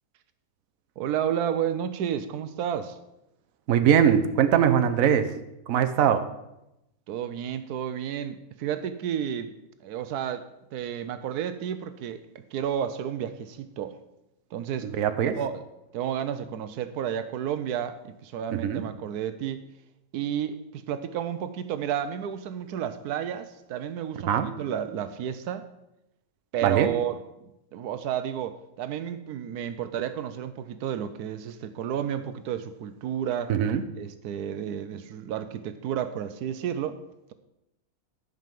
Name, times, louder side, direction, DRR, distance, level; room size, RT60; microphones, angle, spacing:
voice 1, 1.0-3.0 7.1-9.5 9.8-12.2 12.5-14.0 14.5-14.9 15.3-15.6 15.9-19.6 20.1-25.7 26.5-27.2 27.7-33.5 34.0-37.0, right 9 dB, 85° right, 11 dB, 1.2 m, -31 dB
voice 2, 3.7-5.3 5.7-6.2 14.8-15.3 18.5-18.8 24.3-24.5 26.6-26.9 33.5-33.8, right 9 dB, 65° right, 9 dB, 1.2 m, -21 dB
11.0 x 5.4 x 7.4 m, 0.89 s
omnidirectional pair, 1.6 m